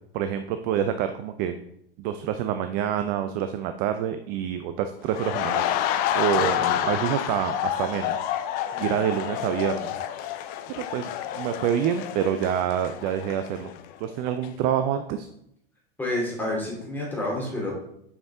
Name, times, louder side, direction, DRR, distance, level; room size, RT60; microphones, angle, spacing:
voice 1, 0.1-1.6 2.0-5.6 6.1-8.2 8.8-9.9 10.7-13.7 14.0-15.3, right 9 dB, 30° right, 8 dB, 0.4 m, -27 dB
sound 1, 5.1-14.0 14.3-14.5, left 11 dB, 30° left, 0.4 m, -29 dB
voice 2, 6.3-6.9 8.7-8.9 16.0-17.7, left 1 dB, 5° left, -3 dB, 2.7 m, -30 dB
7.1 x 5.2 x 3.6 m, 0.74 s
figure-of-eight pair, 95°, 30 cm